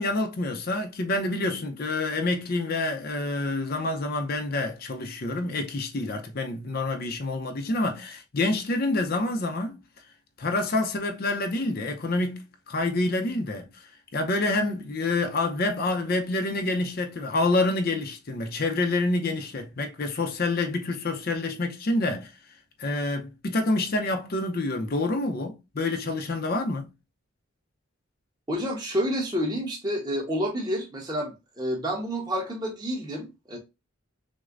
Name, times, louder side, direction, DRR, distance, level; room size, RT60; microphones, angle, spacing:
voice 1, 0.0-9.8 10.4-22.3 22.8-26.9, left 2 dB, 45° left, 0.6 m, -27 dB
voice 2, 28.5-33.6, equal, 20° right, 1.0 m, -29 dB
6.3 x 2.1 x 2.5 m
head